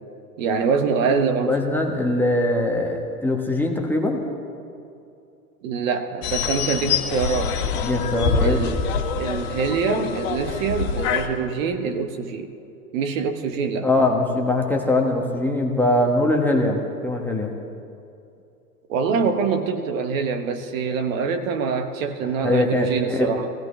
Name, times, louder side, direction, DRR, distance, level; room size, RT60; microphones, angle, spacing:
voice 1, 0.4-1.6 5.6-7.6 8.4-8.8 9.1-12.5 12.9-13.9 18.9-23.5, right 5 dB, 55° right, 6 dB, 1.3 m, -24 dB
voice 2, 1.4-4.2 7.8-8.6 13.8-17.5 22.4-23.3, left 1 dB, 5° left, 0 dB, 1.3 m, -22 dB
sound 1, 6.2-11.3, left 6 dB, 50° left, 1.7 m, -25 dB
22.0 x 16.5 x 3.3 m, 2.6 s
hypercardioid pair, 115°, 47 cm